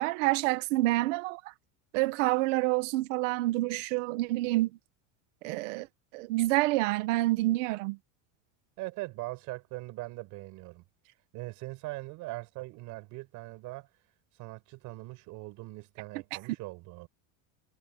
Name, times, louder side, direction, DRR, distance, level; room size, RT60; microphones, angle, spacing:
voice 1, 0.0-1.4 1.9-4.7 5.4-5.9 6.1-8.0, right 19 dB, 80° right, 1.8 m, -27 dB
voice 2, 8.8-10.8 11.3-13.9 14.4-17.1, right 21 dB, 55° right, 6.5 m, -41 dB
cardioid pair, 165°, 37 cm